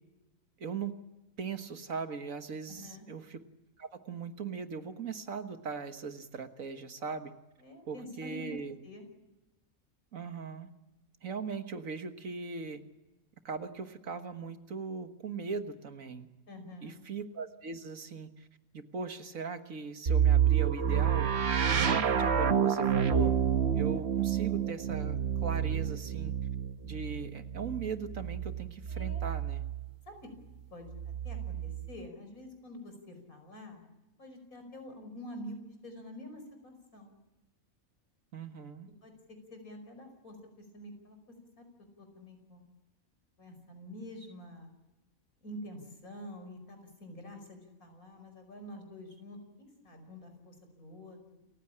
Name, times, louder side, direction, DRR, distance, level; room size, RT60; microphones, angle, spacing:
voice 1, 0.6-0.9 1.4-3.4 3.8-7.3 7.9-8.8 10.1-10.7 11.2-12.8 13.5-16.3 16.8-18.5 18.7-21.3 21.7-23.3 23.7-26.3 26.8-29.6 38.3-38.9, right 5 dB, 75° right, 8 dB, 1.9 m, -39 dB
voice 2, 2.7-3.1 7.6-9.1 16.5-17.0 28.9-29.2 30.1-30.3 30.7-33.8 34.2-35.6 35.8-37.2 39.0-41.7 42.0-42.6 43.4-44.7 45.4-51.4, left 1 dB, 90° left, 6 dB, 5.7 m, -47 dB
sound 1, 20.1-29.9 30.9-31.9, right 8 dB, 50° right, 1.2 m, -29 dB
29.0 x 15.5 x 8.8 m, 1.1 s
omnidirectional pair, 1.4 m